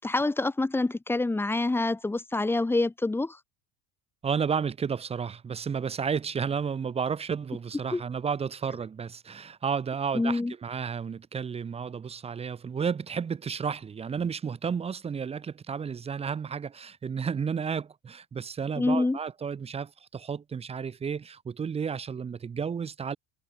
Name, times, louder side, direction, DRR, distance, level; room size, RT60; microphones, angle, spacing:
voice 1, 0.0-3.4 7.9-8.0 10.1-10.5 18.8-19.2, left 2 dB, 5° left, 7.2 m, -26 dB
voice 2, 4.2-23.2, right 6 dB, 20° right, 6.4 m, -32 dB
cardioid pair, 175°, 33 cm